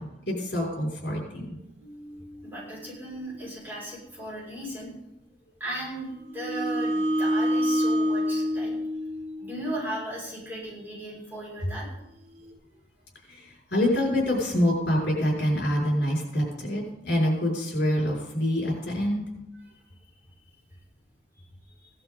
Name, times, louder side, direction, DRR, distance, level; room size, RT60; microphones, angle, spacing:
voice 1, 0.0-1.6 13.3-19.2, left 1 dB, 70° left, -2 dB, 6.0 m, -26 dB
sound 1, 1.8-2.2 6.3-9.8, equal, 50° right, 5.0 m, -27 dB
voice 2, 2.1-4.9 5.6-8.7 9.4-11.9 21.8-21.9, right 1 dB, 10° right, -6 dB, 6.1 m, -36 dB
17.5 x 12.0 x 4.0 m, 0.88 s
head